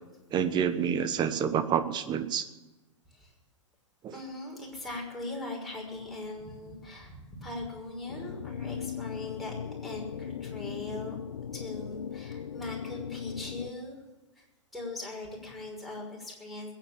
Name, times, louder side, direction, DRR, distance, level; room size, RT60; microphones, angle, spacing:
voice 1, 0.3-2.5 4.0-4.1, right 8 dB, 25° right, 11 dB, 1.3 m, -28 dB
voice 2, 4.1-11.1 11.5-14.0 14.3-14.5 14.7-16.7, left 2 dB, ahead, -3 dB, 5.9 m, -40 dB
sound 1, 8.1-13.7, left 8 dB, 70° left, 0.8 m, -38 dB
21.0 x 9.0 x 7.3 m, 1.1 s
figure-of-eight pair, 105°, 16 cm